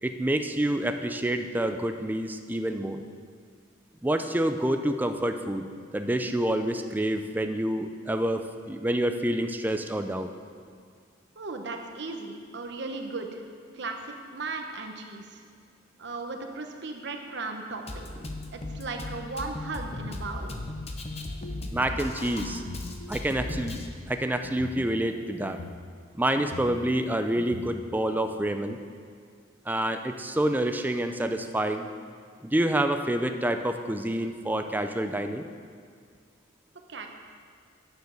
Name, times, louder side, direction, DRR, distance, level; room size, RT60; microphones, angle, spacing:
voice 1, 0.0-3.0 4.0-5.6 5.9-10.3 21.7-22.6 23.1-23.8 24.1-25.6 26.1-28.8 29.7-31.9 32.4-35.5, right 1 dB, 10° right, 7 dB, 0.4 m, -28 dB
voice 2, 11.4-13.4 13.7-15.4 16.0-18.1 18.5-20.5 36.9-37.1, right 3 dB, 60° right, 4 dB, 1.0 m, -36 dB
Drum kit, 17.9-23.9, left 2 dB, 35° left, 0.8 m, -37 dB
sound 1, 21.3-22.0 22.5-23.9 24.4-25.7 26.3-27.6, left 3 dB, 80° left, 0.7 m, -42 dB
9.3 x 7.1 x 6.6 m, 2.1 s
head